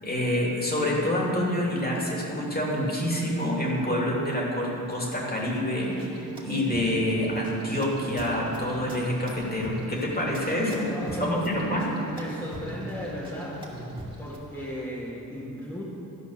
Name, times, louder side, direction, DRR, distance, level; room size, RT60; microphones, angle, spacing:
voice 1, 0.0-10.9 11.2-12.0, left 1 dB, 25° left, -3 dB, 2.6 m, -27 dB
sound 1, 5.8-14.4, equal, 15° right, 2.3 m, -39 dB
voice 2, 10.7-13.6 14.2-15.8, equal, 10° left, -8 dB, 1.8 m, -35 dB
12.5 x 5.2 x 6.5 m, 2.9 s
cardioid pair, 50°, 36 cm